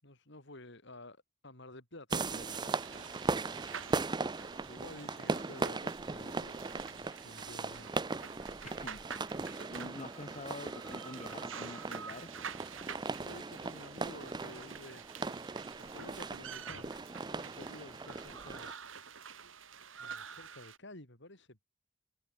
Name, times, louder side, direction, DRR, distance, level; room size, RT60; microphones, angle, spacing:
voice 1, 0.0-3.8 4.7-8.0 13.2-15.1 15.7-18.7 20.0-21.6, left 2 dB, 65° left, 5.9 m, -52 dB
sound 1, 2.1-18.7, right 3 dB, 25° right, 0.6 m, -39 dB
sound 2, 2.1-20.8, right 7 dB, 90° right, 2.8 m, -48 dB
voice 2, 8.6-12.3, left 2 dB, 40° left, 1.4 m, -47 dB
head